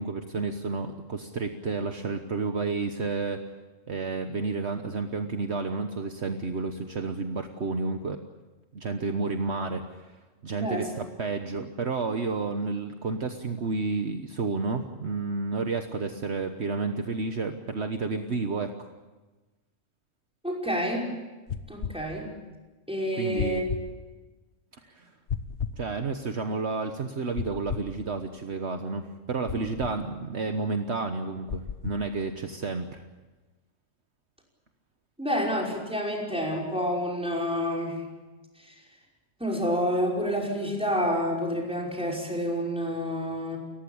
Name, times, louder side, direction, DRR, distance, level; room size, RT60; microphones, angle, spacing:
voice 1, 0.0-3.4 3.9-8.2 8.7-10.2 10.4-18.9 23.2-23.7 24.8-25.1 25.8-33.0, right 4 dB, 55° right, 6 dB, 1.5 m, -31 dB
voice 2, 10.5-10.9 20.4-21.1 21.7-22.3 22.9-23.6 35.2-38.0 39.4-43.6, equal, 5° right, -1 dB, 5.5 m, -28 dB
sound 1, 21.5-22.0 23.4-23.8 25.3-25.8 27.4-27.9 29.5-30.0 31.5-32.0, left 7 dB, 60° left, 1.3 m, -33 dB
30.0 x 15.0 x 8.8 m, 1.2 s
omnidirectional pair, 1.3 m